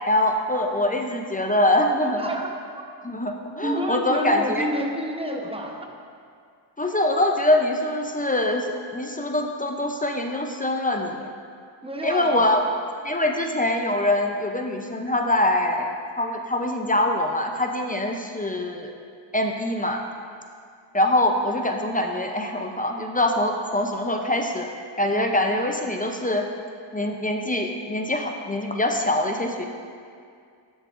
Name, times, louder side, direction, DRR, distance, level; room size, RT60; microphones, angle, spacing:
voice 1, 0.1-2.3 3.0-4.7 6.8-11.3 12.0-12.6 13.0-18.9 19.3-20.0 20.9-24.7 25.0-26.5 26.9-29.7, left 1 dB, 20° left, 3 dB, 0.5 m, -24 dB
voice 2, 2.0-2.5 3.6-5.9 11.8-12.5, right 1 dB, 10° right, 1 dB, 0.9 m, -29 dB
12.5 x 7.2 x 2.5 m, 2.3 s
wide cardioid pair, 95°, 46 cm